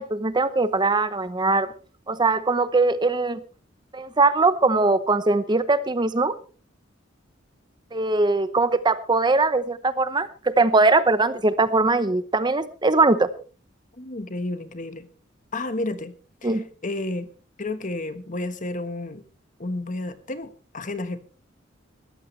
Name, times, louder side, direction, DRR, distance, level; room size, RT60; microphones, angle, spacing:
voice 1, 0.0-1.7 2.1-3.4 3.9-6.3 7.9-13.3 16.4-16.6, right 3 dB, 25° right, 13 dB, 0.8 m, -21 dB
voice 2, 14.0-15.1 15.5-16.1 16.4-17.3 17.6-19.2 19.6-21.2, left 2 dB, 40° left, 11 dB, 1.4 m, -31 dB
20.0 x 14.5 x 3.3 m, 0.37 s
head